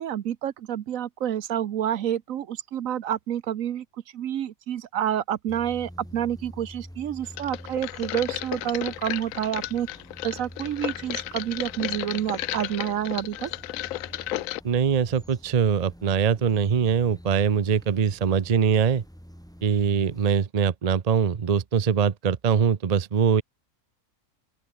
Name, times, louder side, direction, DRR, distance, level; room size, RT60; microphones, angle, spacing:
voice 1, 0.0-3.8 4.1-9.9 10.2-13.5, right 10 dB, 70° right, 1.1 m, -28 dB
sound 1, 5.5-20.4, equal, ahead, 3.9 m, -47 dB
sound 2, 7.4-14.6, left 14 dB, 70° left, 0.9 m, -33 dB
voice 2, 14.6-19.0 19.6-23.4, right 7 dB, 40° right, 0.6 m, -22 dB
open air
omnidirectional pair, 1.5 m